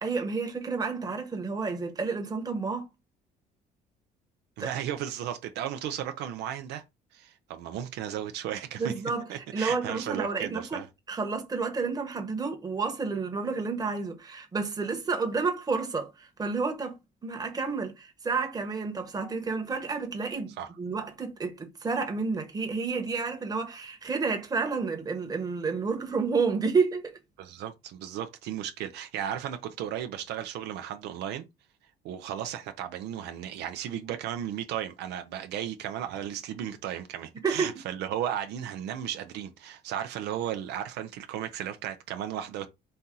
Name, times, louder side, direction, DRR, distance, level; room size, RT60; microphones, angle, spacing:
voice 1, 0.0-2.9 4.6-4.7 8.8-10.8 11.1-20.5 20.8-27.1 37.4-37.7, right 4 dB, 20° right, 1.2 m, -30 dB
voice 2, 4.6-6.8 7.1-8.9 9.3-10.9 20.6-20.7 27.4-31.5 32.0-42.7, right 10 dB, 80° right, 0.7 m, -35 dB
4.4 x 2.8 x 3.7 m
cardioid pair, 110°, 17 cm